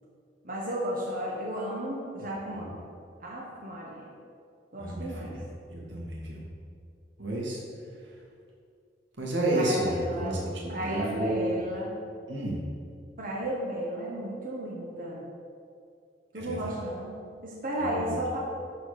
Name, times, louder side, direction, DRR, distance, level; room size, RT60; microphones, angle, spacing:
voice 1, 0.4-2.8 3.2-4.1 4.7-5.3 9.5-10.4 10.7-11.9 13.2-15.2 16.3-17.1 17.4-18.4, right 1 dB, 50° right, -4 dB, 1.5 m, -33 dB
voice 2, 4.8-5.4 5.7-6.4 7.2-7.6 9.2-11.5 12.3-12.6 16.3-16.8 17.8-18.2, right 1 dB, 85° right, -3 dB, 2.3 m, -31 dB
12.0 x 4.2 x 6.8 m, 2.3 s
head